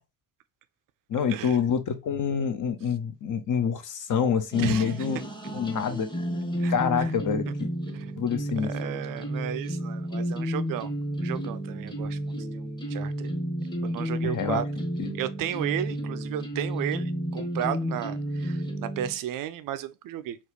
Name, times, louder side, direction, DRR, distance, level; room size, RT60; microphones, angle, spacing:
voice 1, 1.1-5.2 5.5-6.1 6.7-7.7 8.2-8.7 14.2-14.6 15.0-15.2, left 7 dB, 45° left, 0.8 m, -27 dB
sound 1, 4.5-19.1, equal, 10° left, 1.0 m, -32 dB
voice 2, 4.6-4.9 6.6-6.7 7.0-7.1 7.9-8.2 8.6-13.3 13.8-14.6 15.1-20.4, right 11 dB, 50° right, 0.5 m, -34 dB
4.3 x 2.3 x 3.0 m
figure-of-eight pair, 40°, 44 cm